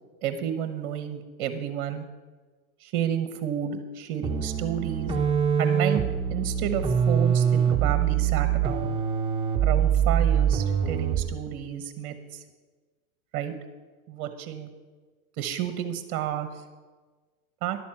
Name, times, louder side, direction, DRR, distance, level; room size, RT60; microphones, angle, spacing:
voice 1, 0.2-2.0 2.8-5.1 5.6-6.0 6.3-9.0 9.6-12.4 13.3-13.5 14.1-14.7 15.4-16.6 17.6-17.8, right 10 dB, 45° right, 9 dB, 1.1 m, -31 dB
sound 1, 4.2-11.4, right 8 dB, 10° right, 1.4 m, -24 dB
11.5 x 7.0 x 7.7 m, 1.3 s
hypercardioid pair, 115°, 44 cm